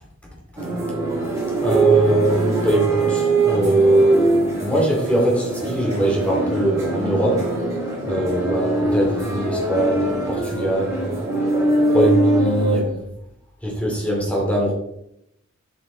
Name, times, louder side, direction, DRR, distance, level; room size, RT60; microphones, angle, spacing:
sound 1, 0.6-12.8, right 2 dB, 15° right, 3.2 m, -21 dB
voice 1, 1.6-7.4 8.1-11.1 11.9-13.1 13.6-14.7, equal, 5° left, -3 dB, 2.6 m, -22 dB
7.6 x 7.1 x 3.9 m, 0.79 s
head